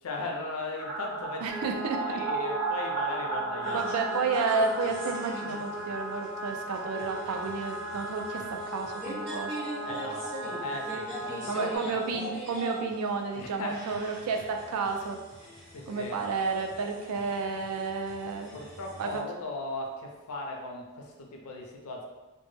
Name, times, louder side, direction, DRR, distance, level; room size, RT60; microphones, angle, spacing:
voice 1, 0.0-1.5 2.0-3.9 9.8-12.0 13.4-13.8 15.7-16.3 18.5-22.0, left 2 dB, 80° left, 1 dB, 0.5 m, -37 dB
sound 1, 0.8-12.4 12.7-12.8 13.0-13.1 16.1-16.2 16.5-16.6 16.8-18.6 18.9-19.0, right 4 dB, 60° right, 1.1 m, -38 dB
voice 2, 1.4-2.2 3.7-9.6 11.5-15.2 15.9-18.6 19.0-19.2, right 4 dB, 90° right, 4 dB, 0.4 m, -31 dB
sound 2, 1.5-11.8, right 1 dB, 10° right, 0.7 m, -38 dB
sound 3, 3.6-19.2, right 1 dB, 45° right, 0.7 m, -43 dB
2.1 x 2.0 x 3.1 m, 1.2 s
head